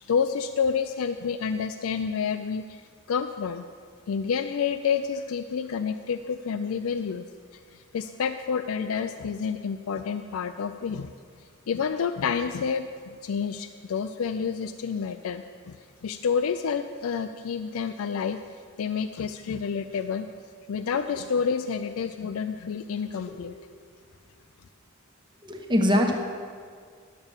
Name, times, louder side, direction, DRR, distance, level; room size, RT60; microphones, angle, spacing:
voice 1, 0.0-2.8 3.1-3.6 4.1-7.2 7.7-11.1 11.7-15.8 16.0-18.4 18.8-20.3 20.7-23.5, left 6 dB, 75° left, 8 dB, 0.4 m, -29 dB
voice 2, 25.4-26.1, left 1 dB, 20° right, 2 dB, 1.1 m, -23 dB
11.0 x 6.8 x 7.2 m, 2.1 s
head